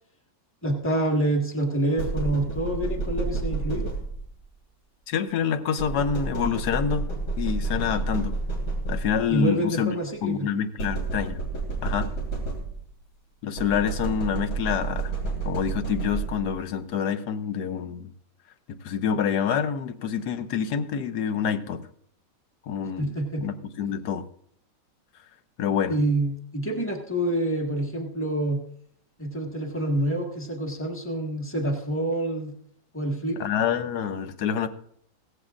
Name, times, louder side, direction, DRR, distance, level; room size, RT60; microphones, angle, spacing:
voice 1, 0.6-3.9 9.3-10.5 23.0-23.5 25.9-28.6 29.2-32.5 32.9-33.4, right 1 dB, 5° left, 1 dB, 1.5 m, -27 dB
sound 1, 2.0-4.4 5.8-9.4 10.8-13.0 13.6-16.6, right 3 dB, 90° left, 3.5 m, -30 dB
voice 2, 5.1-7.1 7.4-8.3 8.9-9.9 10.2-11.4 11.8-12.1 13.4-15.1 15.4-18.1 18.7-21.9 22.7-24.3 25.6-26.0 33.4-34.7, left 7 dB, 65° left, 10 dB, 1.3 m, -27 dB
16.5 x 14.5 x 2.5 m, 0.65 s
omnidirectional pair, 1.9 m